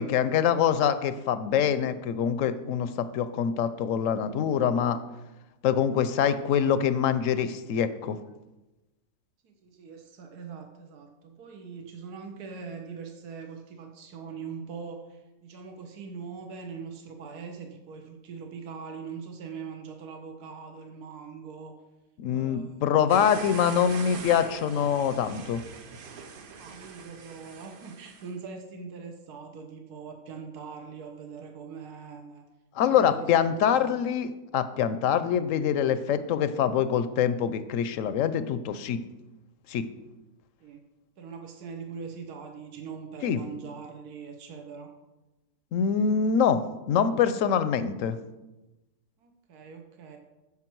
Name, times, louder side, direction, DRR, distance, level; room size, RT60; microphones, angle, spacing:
voice 1, 0.0-5.0 5.6-8.2 22.2-25.6 32.8-39.0 39.7-39.9 43.2-43.4 45.7-46.6 46.9-48.2, left 8 dB, 70° left, 12 dB, 0.9 m, -25 dB
voice 2, 9.4-21.7 22.3-22.8 23.3-24.0 26.6-32.4 32.8-33.9 40.6-40.8 41.2-44.9 49.2-50.2, right 5 dB, 80° right, 4 dB, 1.5 m, -42 dB
sound 1, 23.1-28.3, right 5 dB, 50° right, 0.6 m, -43 dB
9.8 x 7.1 x 4.5 m, 1.0 s
omnidirectional pair, 1.6 m